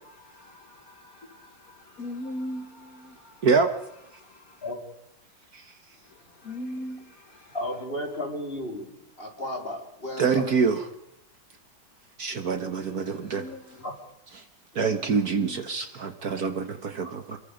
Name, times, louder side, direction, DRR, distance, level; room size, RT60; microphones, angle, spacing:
voice 1, 0.2-3.5 4.2-4.6 6.4-7.5 12.7-13.6 15.4-15.6, left 1 dB, 50° left, 2.0 m, -40 dB
voice 2, 7.5-8.9 9.2-10.4 13.8-13.9 14.7-14.9, left 1 dB, 30° left, 4.2 m, -33 dB
voice 3, 10.2-10.8 12.2-13.4 14.7-17.4, right 5 dB, 55° right, 1.7 m, -25 dB
28.0 x 22.5 x 5.2 m
omnidirectional pair, 2.1 m